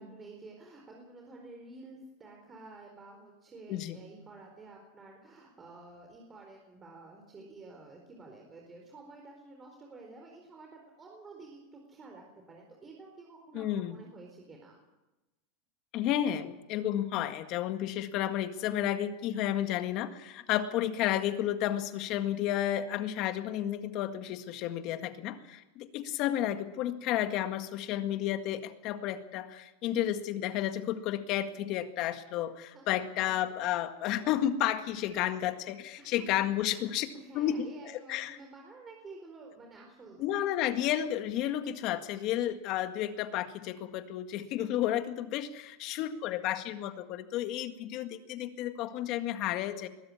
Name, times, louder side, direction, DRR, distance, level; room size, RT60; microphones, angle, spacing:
voice 1, 0.0-14.7 32.7-33.5 36.0-36.3 36.6-40.3, right 3 dB, 20° right, 1 dB, 4.4 m, -51 dB
voice 2, 13.5-14.0 15.9-37.1 37.3-38.4 40.2-49.9, left 12 dB, 50° left, 8 dB, 1.8 m, -32 dB
21.0 x 13.5 x 9.8 m, 1.0 s
supercardioid pair, 130°, 0 cm